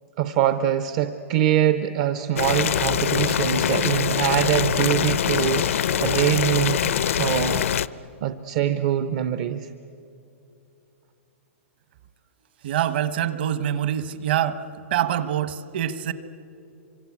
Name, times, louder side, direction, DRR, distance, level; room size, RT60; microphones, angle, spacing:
voice 1, 0.2-6.9 7.2-7.7 8.2-9.7, right 11 dB, 30° right, 10 dB, 0.6 m, -23 dB
Boiling, 2.4-7.9, left 9 dB, 70° left, 0.6 m, -23 dB
voice 2, 12.6-14.6 14.9-16.1, right 10 dB, 45° right, 13 dB, 1.1 m, -25 dB
26.5 x 25.0 x 8.4 m, 2.7 s
hypercardioid pair, 170°, 7 cm